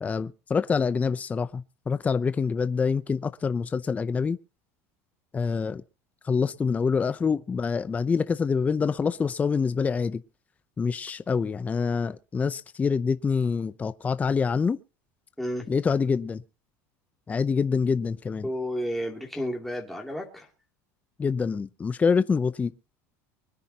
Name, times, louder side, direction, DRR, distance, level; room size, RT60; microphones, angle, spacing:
voice 1, 0.0-4.4 5.3-5.8 6.2-10.2 10.8-14.8 15.7-16.4 17.3-18.5 21.2-22.7, left 5 dB, 15° left, 0.6 m, -26 dB
voice 2, 18.4-20.5, equal, ahead, 2.7 m, -31 dB
24.5 x 10.0 x 2.9 m
supercardioid pair, 135°, 8 cm